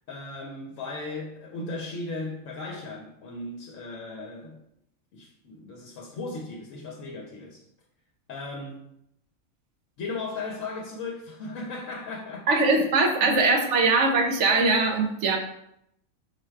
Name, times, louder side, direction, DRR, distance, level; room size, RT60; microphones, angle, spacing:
voice 1, 0.1-4.6 5.1-7.6 8.3-8.8 10.0-12.5 12.7-12.8 13.2-13.3, left 3 dB, 70° left, 1.0 m, -36 dB
voice 2, 12.5-15.4, right 3 dB, 65° right, 0.9 m, -21 dB
4.7 x 2.2 x 4.5 m
omnidirectional pair, 1.4 m